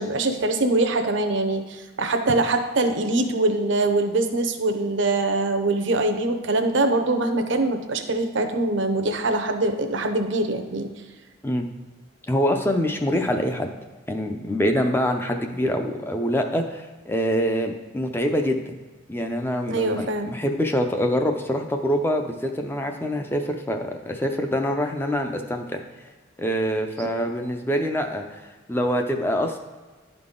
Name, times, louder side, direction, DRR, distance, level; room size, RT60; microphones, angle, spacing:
voice 1, 0.0-10.9 19.7-20.3 27.0-27.1, right 2 dB, 65° right, 5 dB, 0.7 m, -23 dB
voice 2, 12.3-13.7 14.1-18.6 19.1-25.8 26.4-28.4 28.7-29.6, equal, 10° left, 4 dB, 0.4 m, -25 dB
11.0 x 3.9 x 3.7 m, 1.3 s
head